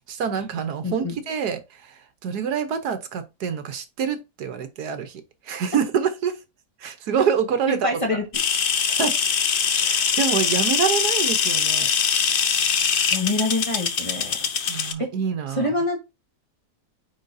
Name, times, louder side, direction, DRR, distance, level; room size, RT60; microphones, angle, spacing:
voice 1, 0.1-6.4 6.8-7.9 8.8-9.2 9.7-11.9 14.7-15.7, right 7 dB, 70° right, 1.4 m, -26 dB
voice 2, 0.8-1.2 7.7-8.2 13.1-14.3 15.0-15.1 15.6-16.0, left 2 dB, 20° left, 1.5 m, -25 dB
sound 1, 8.3-14.9, left 7 dB, 70° left, 0.5 m, -22 dB
9.5 x 3.9 x 2.6 m
omnidirectional pair, 1.8 m